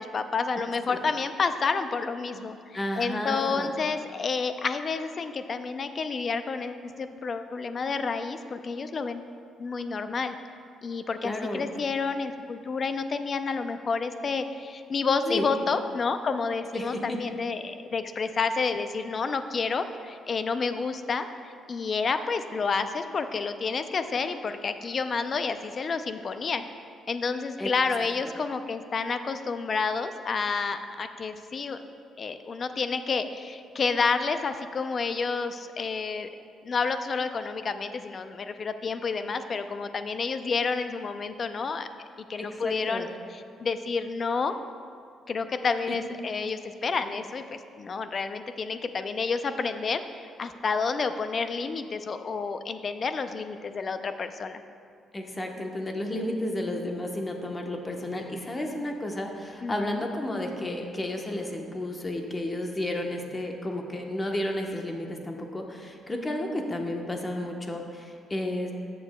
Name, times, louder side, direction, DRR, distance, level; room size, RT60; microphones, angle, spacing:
voice 1, 0.0-9.3 9.6-10.4 10.8-21.3 21.7-26.7 27.1-31.8 32.2-36.3 36.6-41.9 42.3-43.1 43.6-44.5 45.3-54.6 59.6-60.1, left 4 dB, 45° left, 10 dB, 0.4 m, -29 dB
voice 2, 2.7-3.7 11.2-11.7 15.3-15.5 16.7-17.2 27.6-27.7 28.0-28.1 42.4-43.1 55.1-68.7, left 1 dB, 25° left, 2 dB, 1.0 m, -32 dB
13.5 x 6.9 x 2.2 m, 2.3 s
cardioid pair, 90°, 0 cm